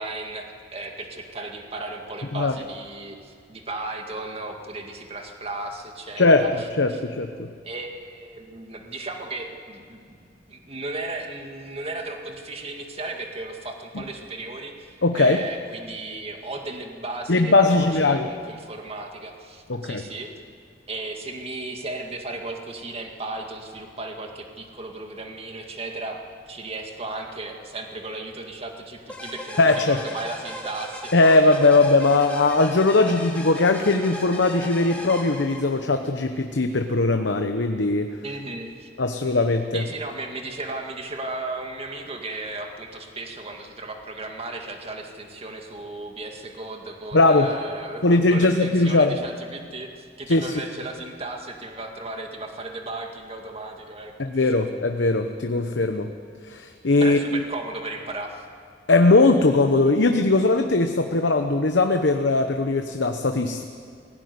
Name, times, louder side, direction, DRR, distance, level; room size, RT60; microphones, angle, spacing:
voice 1, 0.0-7.0 7.6-20.3 20.9-26.2 26.5-31.2 38.2-38.9 39.7-54.1 54.4-54.5 57.0-58.5, right 2 dB, 35° right, 3 dB, 2.1 m, -35 dB
voice 2, 6.8-7.5 15.0-15.4 17.3-18.3 19.7-20.0 29.6-30.0 31.1-38.1 39.0-39.8 47.1-47.5 48.0-49.2 50.3-50.5 54.2-56.1 56.5-57.2 58.9-63.6, left 3 dB, 70° left, 6 dB, 0.9 m, -19 dB
sound 1, 29.1-36.0, left 1 dB, 5° left, 4.5 m, -37 dB
18.0 x 16.0 x 9.6 m, 2.1 s
head